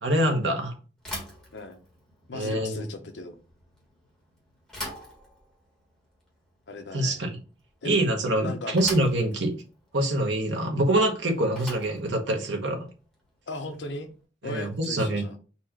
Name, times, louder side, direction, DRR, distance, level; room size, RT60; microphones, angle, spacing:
voice 1, 0.0-0.7 2.3-2.8 6.9-7.3 7.8-9.5 9.9-12.9 14.4-15.2, right 1 dB, 80° right, 3 dB, 1.0 m, -25 dB
Bicycle / Thump thud, 1.0-14.1, left 1 dB, 5° left, 1.3 m, -44 dB
voice 2, 2.3-3.4 6.7-7.2 7.8-8.0 8.4-8.9 13.5-14.1 14.4-15.4, left 2 dB, 75° left, 6 dB, 0.7 m, -37 dB
4.2 x 2.4 x 4.5 m, 0.36 s
head